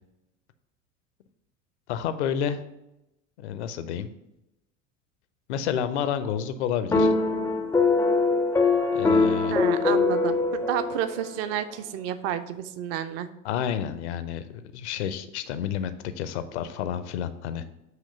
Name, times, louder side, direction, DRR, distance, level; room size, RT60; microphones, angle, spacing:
voice 1, 1.9-2.6 3.4-4.1 5.5-7.1 8.9-9.6 13.4-17.6, left 8 dB, 60° left, 11 dB, 0.6 m, -30 dB
sound 1, 6.9-11.4, left 3 dB, 5° left, 0.4 m, -23 dB
voice 2, 9.5-13.3, right 10 dB, 40° right, 11 dB, 0.6 m, -30 dB
7.7 x 2.9 x 5.5 m, 0.89 s
figure-of-eight pair, 70°, 39 cm